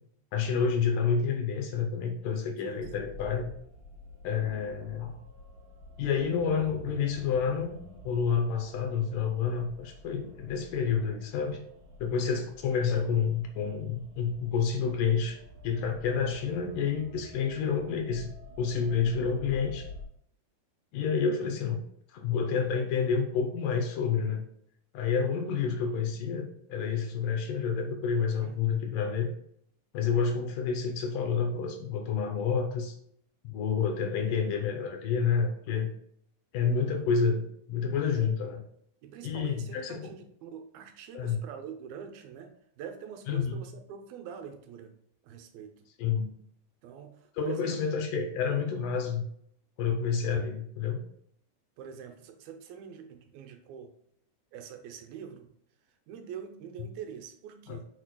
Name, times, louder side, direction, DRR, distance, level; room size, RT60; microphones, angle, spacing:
voice 1, 0.3-3.5 4.2-5.2 6.0-7.8 8.0-11.6 12.0-15.4 15.6-18.3 18.6-19.9 20.9-21.8 22.1-24.4 24.9-29.3 29.9-32.9 33.4-35.9 36.5-38.6 39.2-40.1 41.1-41.4 43.3-43.6 46.0-46.3 47.4-49.2 49.8-51.0 57.7-57.8, left 6 dB, 75° left, 4 dB, 2.2 m, -29 dB
voice 2, 2.6-3.2 28.4-28.7 38.1-38.3 39.0-42.5 42.8-45.0 45.2-45.9 46.8-47.8 50.1-50.4 51.8-53.9 54.5-55.5 56.1-57.9, right 7 dB, 80° right, 5 dB, 2.6 m, -44 dB
sound 1, 2.8-20.0, left 1 dB, 60° right, 2.0 m, -49 dB
8.8 x 6.4 x 2.2 m, 0.70 s
omnidirectional pair, 4.2 m